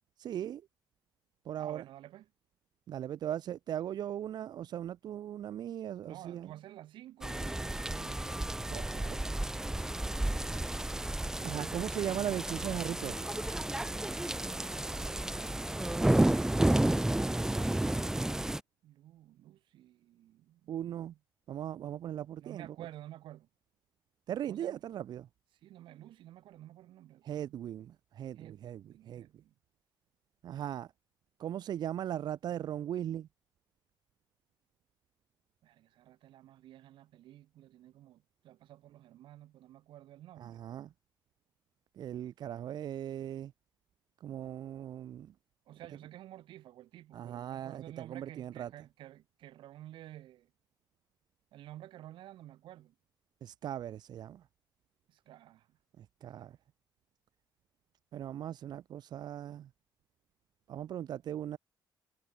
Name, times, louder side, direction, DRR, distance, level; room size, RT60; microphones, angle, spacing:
voice 1, 0.2-0.6 1.5-1.8 2.9-6.5 8.7-9.3 11.4-13.3 20.7-21.1 21.5-22.8 24.3-25.3 27.2-29.3 30.4-30.9 31.4-33.3 40.4-40.9 42.0-43.5 44.2-45.3 47.1-48.7 53.4-54.4 56.0-56.5 58.1-59.7 60.7-61.6, right 10 dB, 55° right, 4.0 m, -38 dB
voice 2, 1.6-2.3 6.0-8.6 18.8-21.0 22.4-23.5 24.5-24.8 25.6-27.6 28.4-29.5 35.6-40.6 45.7-50.5 51.5-52.9 55.1-55.8 56.4-56.6, right 13 dB, 80° right, 7.7 m, -52 dB
sound 1, 7.2-18.6, right 1 dB, 5° right, 1.2 m, -31 dB
cardioid pair, 165°, 8 cm